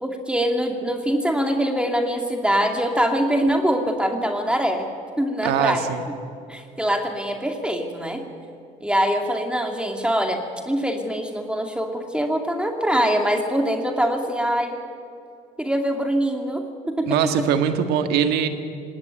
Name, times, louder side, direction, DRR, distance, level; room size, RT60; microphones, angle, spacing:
voice 1, 0.0-4.9 5.2-5.9 6.5-8.2 8.8-14.8 15.6-17.3, equal, 5° right, 3 dB, 2.5 m, -23 dB
voice 2, 5.4-6.0 17.1-18.5, right 8 dB, 70° right, 8 dB, 1.7 m, -22 dB
18.5 x 18.5 x 9.3 m, 2.5 s
hypercardioid pair, 65°, 17 cm